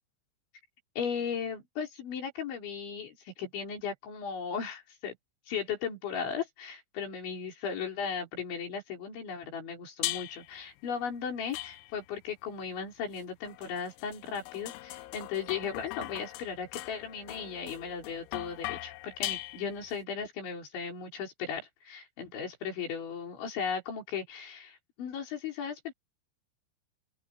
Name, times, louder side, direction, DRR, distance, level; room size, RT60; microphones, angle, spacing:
voice 1, 1.0-5.2 5.5-25.9, left 6 dB, 65° left, 7.2 m, -36 dB
sound 1, 10.0-10.6 11.5-12.2 13.2-20.0, left 18 dB, 85° left, 3.1 m, -40 dB
open air
omnidirectional pair, 5.7 m